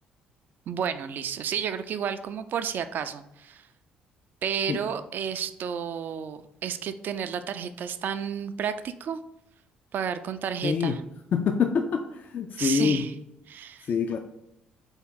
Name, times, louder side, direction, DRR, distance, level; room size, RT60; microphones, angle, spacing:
voice 1, 0.7-3.7 4.4-9.2 9.9-11.0 12.6-13.1 13.5-13.9, right 8 dB, 50° right, 11 dB, 0.3 m, -31 dB
voice 2, 10.6-11.0 11.3-13.0 13.9-14.2, left 6 dB, 45° left, 5 dB, 0.4 m, -25 dB
4.0 x 3.5 x 3.6 m, 0.83 s
hypercardioid pair, 50°, 4 cm